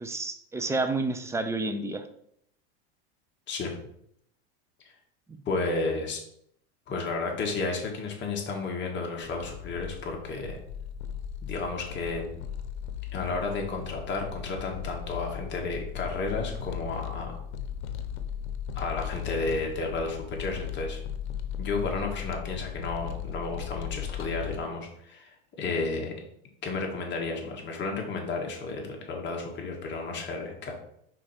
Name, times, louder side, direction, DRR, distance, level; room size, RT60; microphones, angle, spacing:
voice 1, 0.0-2.1, right 2 dB, 10° right, 8 dB, 0.4 m, -30 dB
voice 2, 5.4-6.2 6.9-10.6 11.4-12.4 13.1-17.4 18.7-21.0 21.6-26.1 26.6-30.7, left 3 dB, 35° left, 1 dB, 1.7 m, -32 dB
sound 1, 9.2-24.6, left 8 dB, 90° left, 0.8 m, -37 dB
5.0 x 4.5 x 4.4 m, 0.71 s
supercardioid pair, 120°, 33 cm